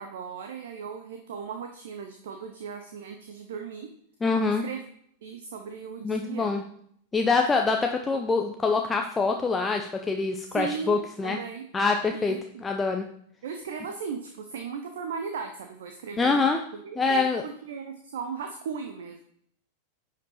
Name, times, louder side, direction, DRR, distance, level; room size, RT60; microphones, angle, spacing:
voice 1, 0.0-3.9 4.6-4.8 5.2-6.6 10.5-11.6 12.1-12.6 13.4-19.2, right 6 dB, 60° right, 5 dB, 0.8 m, -37 dB
voice 2, 4.2-4.6 6.0-6.6 7.1-11.4 11.7-12.4 12.6-13.1 16.2-16.6 17.0-17.4, left 4 dB, 15° left, 3 dB, 0.6 m, -25 dB
10.0 x 5.2 x 4.3 m, 0.66 s
figure-of-eight pair, 90°, 0 cm